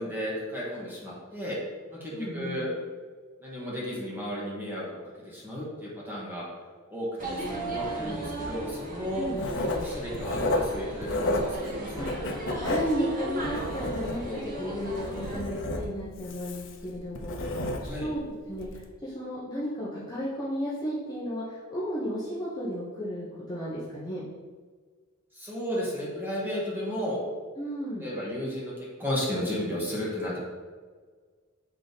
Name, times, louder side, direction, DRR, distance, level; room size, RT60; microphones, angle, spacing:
voice 1, 0.0-1.6 1.9-2.7 3.4-4.8 5.2-6.5 6.9-9.3 9.7-12.1 17.8-18.1 25.3-27.2 28.0-30.4, equal, 10° right, -6 dB, 1.8 m, -33 dB
voice 2, 2.1-2.7 7.3-8.4 9.2-9.4 12.0-12.1 12.6-18.2 18.5-24.2 27.6-28.1, equal, 20° left, -8 dB, 1.1 m, -34 dB
sound 1, 7.2-15.4, right 2 dB, 40° right, 1.3 m, -37 dB
Writing, 9.4-11.7 12.0-14.4 14.8-18.1 18.5-18.8, left 1 dB, 60° left, 0.8 m, -31 dB
7.0 x 3.8 x 4.1 m, 1.5 s
head